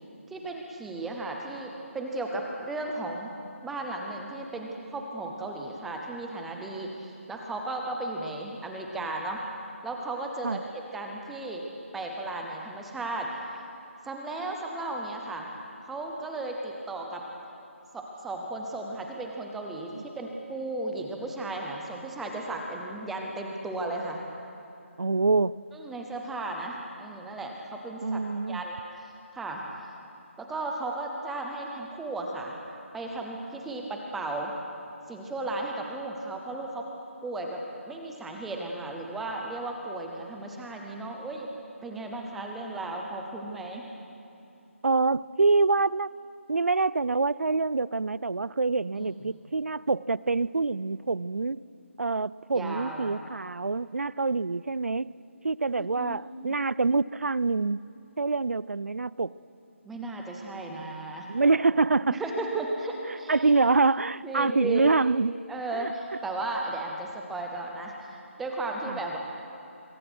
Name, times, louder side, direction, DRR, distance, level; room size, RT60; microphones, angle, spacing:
voice 1, 0.3-3.3 3.6-9.4 9.8-11.7 11.9-13.3 14.0-15.5 15.8-17.3 17.9-24.2 25.7-28.2 28.5-29.6 30.4-32.6 32.9-34.5 35.1-36.9 37.2-41.5 41.8-43.9 48.9-49.1 52.5-53.2 55.8-56.6 59.8-61.3 62.1-63.3 64.2-64.9 65.5-69.2, right 2 dB, ahead, 1 dB, 0.7 m, -35 dB
voice 2, 25.0-25.6 28.0-28.6 44.8-46.1 46.5-51.6 52.0-55.1 55.4-57.8 58.2-59.3 61.3-62.2 63.3-65.3 65.7-65.9 68.9-69.0, right 3 dB, 85° right, 20 dB, 0.6 m, -25 dB
25.0 x 23.0 x 6.2 m, 2.8 s
figure-of-eight pair, 175°, 7 cm